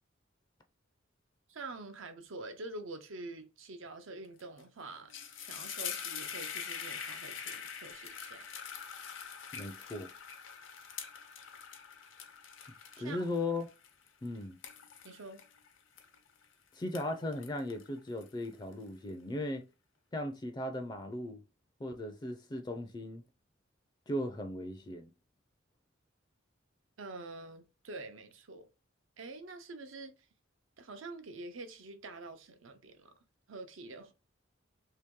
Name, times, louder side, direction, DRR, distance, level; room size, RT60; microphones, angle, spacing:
voice 1, 1.5-8.5 12.9-13.3 15.0-15.4 27.0-28.7 29.2-30.1 30.8-33.1 33.5-34.1, right 2 dB, 90° right, 0.7 m, -46 dB
sound 1, 4.4-4.6 4.9-16.4 16.8-18.7, left 7 dB, 75° left, 0.7 m, -44 dB
voice 2, 9.5-10.1 13.0-13.7 14.2-14.6 16.7-19.7 20.1-21.4 21.8-23.2 24.1-25.1, left 1 dB, 20° left, 0.4 m, -37 dB
2.9 x 2.8 x 3.6 m
head